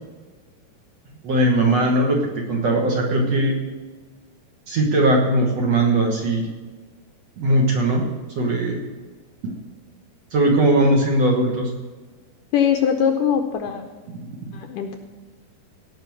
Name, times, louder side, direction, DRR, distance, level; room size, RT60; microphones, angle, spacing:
voice 1, 1.2-3.6 4.7-6.5 7.4-8.1 8.4-8.8 9.4-9.5 10.3-11.7 14.4-14.5, right 1 dB, 55° right, 0 dB, 2.0 m, -19 dB
voice 2, 12.5-13.8 14.5-15.0, left 8 dB, 80° left, 5 dB, 2.0 m, -21 dB
17.0 x 5.8 x 7.0 m, 1.4 s
omnidirectional pair, 4.5 m